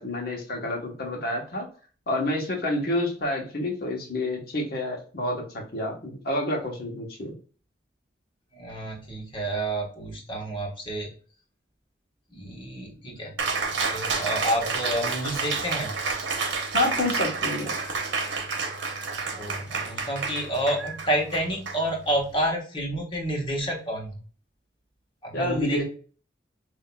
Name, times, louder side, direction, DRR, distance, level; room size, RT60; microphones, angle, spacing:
voice 1, 0.0-1.7 2.1-5.4 5.7-7.3 16.7-17.7 25.3-25.8, left 1 dB, 55° left, 0 dB, 1.1 m, -28 dB
voice 2, 8.5-11.1 12.3-13.4 13.8-15.9 19.4-24.2 25.2-25.8, right 1 dB, 30° left, -1 dB, 1.2 m, -29 dB
Cheering, 13.4-22.3, right 4 dB, 85° right, 0.9 m, -30 dB
5.6 x 2.8 x 2.2 m, 0.40 s
head